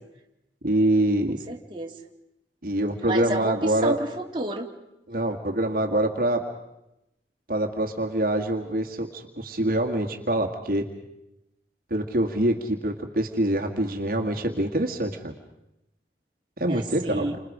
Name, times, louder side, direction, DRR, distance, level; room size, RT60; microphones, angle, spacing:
voice 1, 0.6-1.4 2.6-4.0 5.1-6.5 7.5-10.9 11.9-15.3 16.6-17.3, right 1 dB, 55° right, 2 dB, 1.9 m, -25 dB
voice 2, 1.5-1.9 3.0-4.7 16.7-17.4, right 1 dB, 30° right, 0 dB, 2.3 m, -30 dB
30.0 x 26.5 x 5.1 m, 0.86 s
head